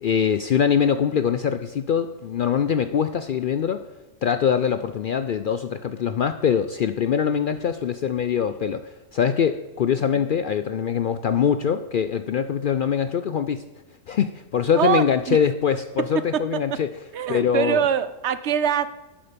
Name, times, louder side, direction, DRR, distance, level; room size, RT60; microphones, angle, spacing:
voice 1, 0.0-3.9 4.2-13.6 14.1-16.9 17.3-17.8, left 7 dB, 60° left, 10 dB, 0.5 m, -23 dB
voice 2, 14.8-15.4 16.1-16.6 17.1-19.0, right 8 dB, 65° right, 14 dB, 0.9 m, -24 dB
11.0 x 8.8 x 5.1 m, 1.1 s
omnidirectional pair, 1.3 m